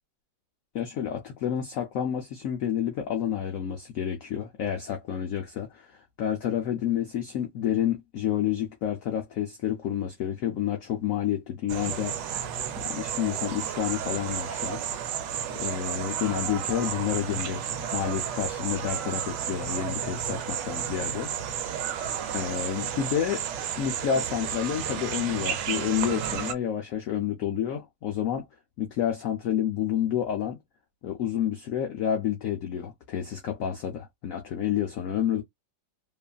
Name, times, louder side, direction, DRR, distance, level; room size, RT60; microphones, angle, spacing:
voice 1, 0.7-12.3 12.8-14.8 15.5-17.6 17.9-21.6 22.3-23.4 23.8-28.5 28.8-30.6 31.0-35.4, left 9 dB, 75° left, 0.7 m, -29 dB
sound 1, 11.7-26.5, right 9 dB, 80° right, 1.2 m, -32 dB
2.9 x 2.4 x 2.3 m
omnidirectional pair, 2.0 m